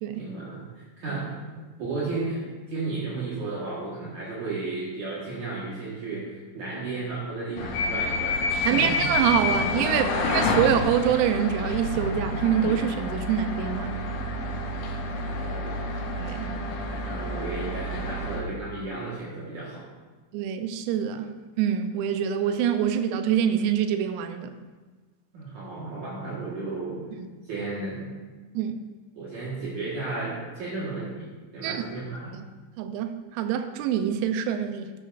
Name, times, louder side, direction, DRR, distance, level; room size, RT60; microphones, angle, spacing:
voice 1, 0.1-10.2 15.1-15.9 16.9-19.9 25.3-27.0 27.4-28.1 29.1-32.4, right 3 dB, 75° right, -7 dB, 1.8 m, -34 dB
sound 1, 7.6-18.4, left 2 dB, 75° left, 3.4 m, -29 dB
voice 2, 8.6-14.0 16.2-16.5 20.3-24.5 27.2-27.3 28.5-28.8 31.6-31.8 32.3-32.4 32.8-34.9, right 9 dB, 90° right, 8 dB, 3.5 m, -25 dB
12.5 x 12.0 x 2.5 m, 1.3 s
omnidirectional pair, 6.0 m